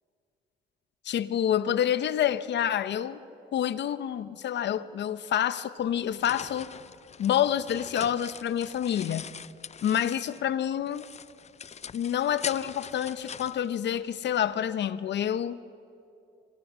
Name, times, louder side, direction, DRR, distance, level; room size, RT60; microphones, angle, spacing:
voice 1, 1.0-3.2 3.5-6.7 7.2-9.2 9.8-11.1 11.9-15.6, left 10 dB, 60° left, 15 dB, 0.9 m, -28 dB
sound 1, 5.8-10.5 10.9-14.4, left 7 dB, 35° left, 0.5 m, -42 dB
26.5 x 24.5 x 6.3 m, 2.6 s
cardioid pair, 90°, 20 cm